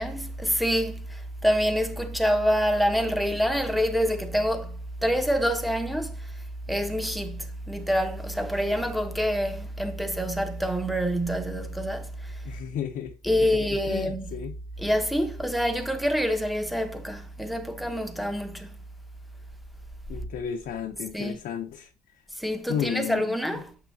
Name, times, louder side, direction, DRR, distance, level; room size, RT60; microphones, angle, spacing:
voice 1, 0.0-6.3 6.7-12.4 13.2-14.4 14.8-18.7 21.1-21.4 22.4-23.7, equal, ahead, 0.9 m, -26 dB
voice 2, 12.4-13.1 13.7-14.5 20.1-21.9 22.7-23.4, left 9 dB, 60° left, 0.7 m, -33 dB
7.3 x 5.7 x 2.7 m
cardioid pair, 110°, 17 cm